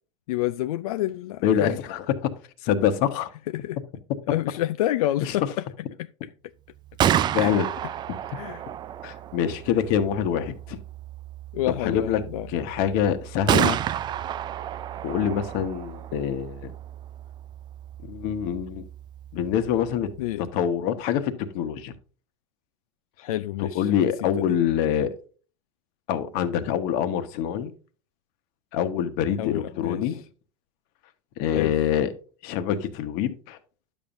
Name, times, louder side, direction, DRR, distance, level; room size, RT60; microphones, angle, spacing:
voice 1, 0.3-1.8 3.5-3.8 4.3-5.6 7.3-7.6 8.3-8.6 11.5-12.5 20.2-20.5 23.2-23.9 24.2-24.4 29.4-30.1 31.5-31.7, left 14 dB, 90° left, 0.4 m, -28 dB
voice 2, 1.4-2.3 2.6-3.3 5.2-5.5 7.3-7.7 9.0-10.8 11.8-12.2 12.5-13.8 15.0-16.7 18.0-18.8 19.3-20.1 20.4-21.9 23.6-25.1 26.1-27.7 28.7-30.2 31.4-32.1 32.4-33.6, left 9 dB, 55° left, 1.2 m, -25 dB
Gunshot gunfire, 6.7-20.6, right 10 dB, 25° right, 0.3 m, -31 dB
11.0 x 7.2 x 2.6 m
supercardioid pair, 130°, 18 cm